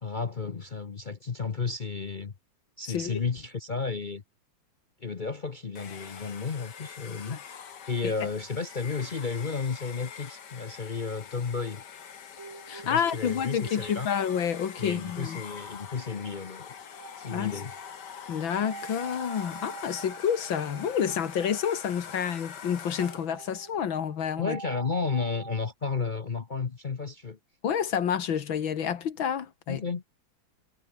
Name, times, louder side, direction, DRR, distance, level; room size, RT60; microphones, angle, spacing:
voice 1, 0.0-2.3 2.8-4.2 5.0-7.4 7.9-11.8 12.7-14.1 14.8-16.7 17.2-17.7 24.4-27.4 29.7-30.1, left 4 dB, 40° left, 0.6 m, -32 dB
voice 2, 2.9-3.2 7.3-7.4 12.7-15.4 17.3-17.5 18.3-24.6 27.6-29.8, left 8 dB, 75° left, 2.3 m, -29 dB
Domestic sounds home sounds, 5.7-23.4, left 7 dB, 60° left, 2.1 m, -44 dB
sound 1, 12.4-25.6, right 4 dB, 40° right, 2.3 m, -47 dB
omnidirectional pair, 2.1 m